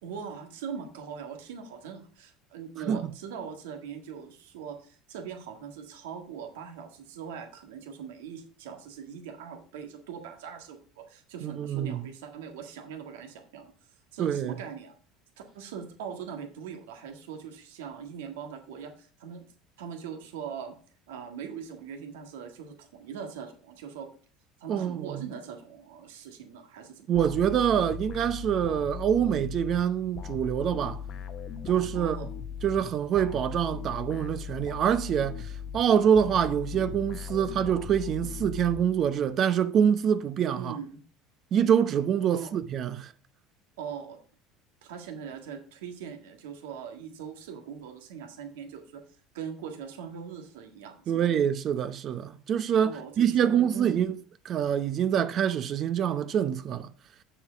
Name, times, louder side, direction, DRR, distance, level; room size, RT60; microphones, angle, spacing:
voice 1, 0.0-13.7 14.1-15.0 15.5-19.4 19.8-20.7 21.1-24.1 24.6-27.1 31.9-32.3 40.5-41.0 42.3-42.5 43.8-44.2 44.8-49.0 49.3-51.3 52.8-54.0, right 7 dB, 80° right, 1.7 m, -41 dB
voice 2, 11.4-12.0 14.2-14.6 24.7-25.2 27.1-31.0 31.7-32.2 32.6-40.8 41.5-43.1 51.1-54.2 54.5-56.9, right 8 dB, 50° right, 0.7 m, -25 dB
sound 1, 27.1-39.3, left 7 dB, 50° left, 0.9 m, -39 dB
7.2 x 7.0 x 5.1 m
hypercardioid pair, 80°, 0 cm